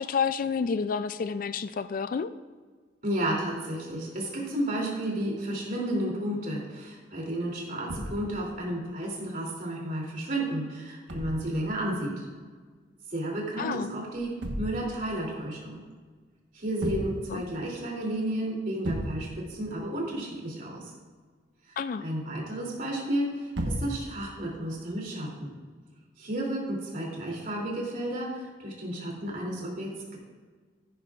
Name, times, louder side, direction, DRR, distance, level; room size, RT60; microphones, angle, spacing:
voice 1, 0.0-2.3 13.6-13.9 17.3-17.4 21.8-22.0, left 6 dB, 50° left, 12 dB, 0.3 m, -29 dB
voice 2, 3.0-12.3 13.1-15.8 16.5-20.9 22.0-25.5 26.2-30.2, right 1 dB, 50° right, -2 dB, 2.9 m, -32 dB
sound 1, 7.9-8.5 11.1-11.7 14.1-15.1 16.7-17.4 17.8-17.9 18.3-18.4 18.8-19.5 23.5-24.2 25.3-25.6, equal, 70° right, 1.2 m, -34 dB
15.0 x 10.0 x 2.4 m, 1.5 s
head